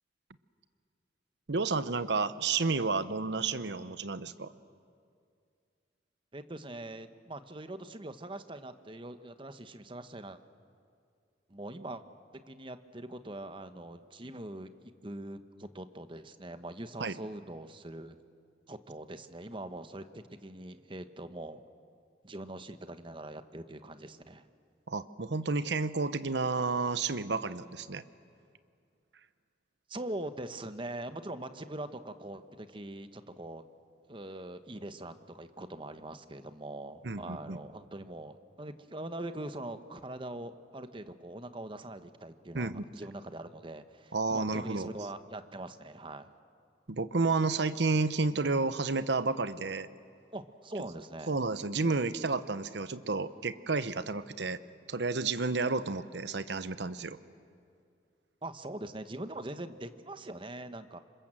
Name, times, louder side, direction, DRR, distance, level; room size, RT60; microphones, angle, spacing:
voice 1, 1.5-4.5 17.0-17.1 24.9-28.0 37.0-37.6 42.5-42.8 44.1-44.9 46.9-49.9 51.3-54.6 54.9-57.2, right 3 dB, 70° right, 14 dB, 0.9 m, -31 dB
voice 2, 6.3-10.4 11.5-12.0 12.3-18.2 18.7-21.6 22.2-24.5 29.9-33.6 34.1-46.3 50.3-51.3 58.4-61.0, right 1 dB, 30° right, 10 dB, 1.0 m, -42 dB
27.0 x 26.0 x 7.6 m, 2.3 s
head